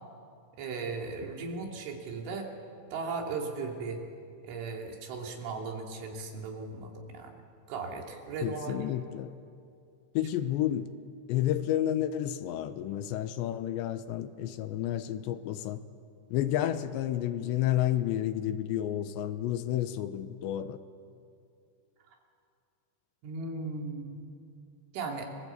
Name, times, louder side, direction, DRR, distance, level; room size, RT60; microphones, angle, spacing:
voice 1, 0.5-2.5 2.9-4.0 4.4-7.4 7.7-8.8 23.2-24.2 24.9-25.3, right 4 dB, 85° right, 1 dB, 5.3 m, -37 dB
voice 2, 8.4-9.3 10.1-10.9 11.3-15.8 16.3-20.8, left 12 dB, 80° left, 10 dB, 3.1 m, -30 dB
30.0 x 21.5 x 8.3 m, 2.4 s
omnidirectional pair, 5.4 m